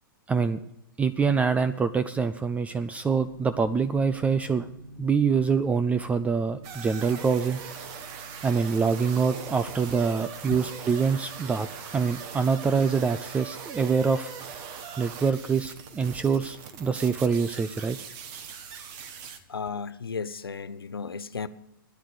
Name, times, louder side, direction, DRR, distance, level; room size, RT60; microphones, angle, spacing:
voice 1, 0.3-0.6 1.0-4.7 5.0-7.6 8.4-11.7 11.9-14.3 15.0-18.0, right 5 dB, 10° right, 0.4 m, -25 dB
sound 1, 3.0-19.4, equal, 70° right, 2.4 m, -51 dB
sound 2, 6.6-19.4, right 7 dB, 40° right, 1.4 m, -41 dB
voice 2, 19.5-21.5, left 5 dB, 85° left, 0.7 m, -34 dB
13.0 x 10.0 x 6.5 m
hypercardioid pair, 115°, 12 cm